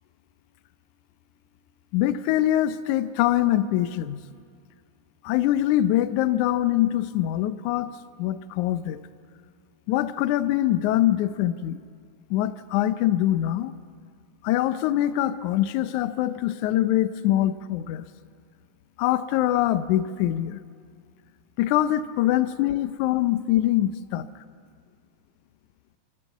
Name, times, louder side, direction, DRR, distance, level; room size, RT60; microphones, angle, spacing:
voice 1, 1.9-4.2 5.2-7.9 8.2-9.1 9.9-11.8 12.3-13.7 14.4-18.1 19.0-20.6 21.6-24.3, left 13 dB, 75° left, 13 dB, 2.0 m, -23 dB
29.5 x 14.5 x 8.1 m, 2.2 s
omnidirectional pair, 3.7 m